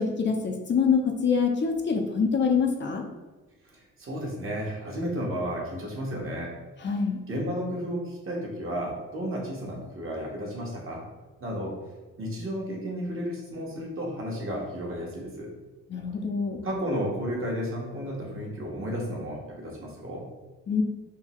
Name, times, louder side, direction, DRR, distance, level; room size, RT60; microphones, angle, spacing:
voice 1, 0.0-3.0 6.8-7.2 15.9-16.6 20.7-20.8, left 5 dB, 40° left, 2 dB, 0.5 m, -25 dB
voice 2, 3.7-6.5 7.3-11.0 11.4-11.8 12.2-15.5 16.6-20.3, equal, 45° right, -2 dB, 1.2 m, -33 dB
3.7 x 2.7 x 3.0 m, 1.2 s
cardioid pair, 90°, 30 cm